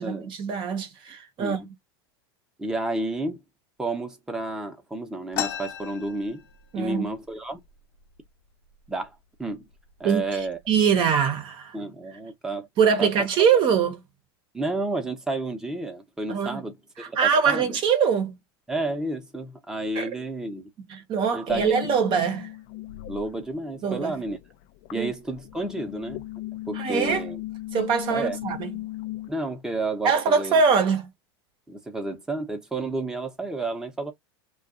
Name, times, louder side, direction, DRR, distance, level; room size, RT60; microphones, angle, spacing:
voice 1, 0.0-1.7 6.7-7.1 10.0-11.8 12.8-14.0 16.3-16.6 17.0-18.4 19.9-20.1 20.9-22.5 23.8-24.1 24.9-25.1 26.7-27.3 27.7-28.7 30.0-31.1, right 6 dB, 40° right, 0.8 m, -23 dB
voice 2, 2.6-3.4 3.8-6.4 6.7-7.6 8.9-9.6 10.0-10.6 11.7-12.7 13.0-13.1 14.5-16.7 17.1-17.2 17.5-17.8 18.7-20.7 21.3-21.6 23.1-24.4 24.9-26.2 26.7-27.4 28.1-28.4 29.3-30.6 31.7-34.1, right 2 dB, 5° right, 0.8 m, -31 dB
sound 1, 5.3-6.9 7.3-7.4 7.6-8.3 8.9-9.0 9.7-9.9 10.4-10.8, left 11 dB, 75° left, 1.3 m, -34 dB
sound 2, 21.5-23.8 24.1-29.3, left 16 dB, 50° left, 0.5 m, -37 dB
2.5 x 2.3 x 2.5 m
supercardioid pair, 130°, 13 cm